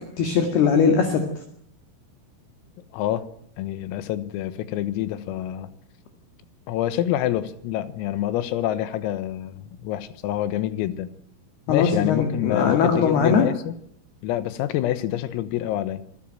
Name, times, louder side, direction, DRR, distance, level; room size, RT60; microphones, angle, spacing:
voice 1, 0.2-1.3 11.7-13.5, left 6 dB, 55° left, 5 dB, 3.7 m, -20 dB
voice 2, 2.9-3.3 3.6-5.7 6.7-11.1 11.7-13.7 14.2-16.0, left 13 dB, 85° left, 13 dB, 3.9 m, -27 dB
26.0 x 16.0 x 9.1 m, 0.69 s
omnidirectional pair, 5.9 m